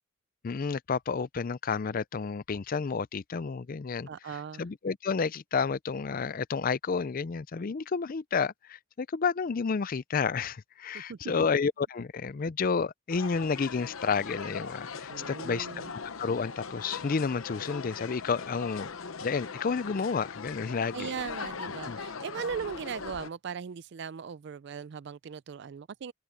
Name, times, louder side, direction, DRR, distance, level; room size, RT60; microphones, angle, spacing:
voice 1, 0.4-4.1 4.6-15.7 16.2-18.9 19.2-21.1 21.9-22.0, left 5 dB, 45° left, 0.4 m, -30 dB
voice 2, 4.1-4.6 10.9-11.2 15.1-15.9 20.9-26.1, right 6 dB, 55° right, 0.4 m, -38 dB
sound 1, 13.1-23.3, left 5 dB, 90° left, 0.9 m, -40 dB
open air
head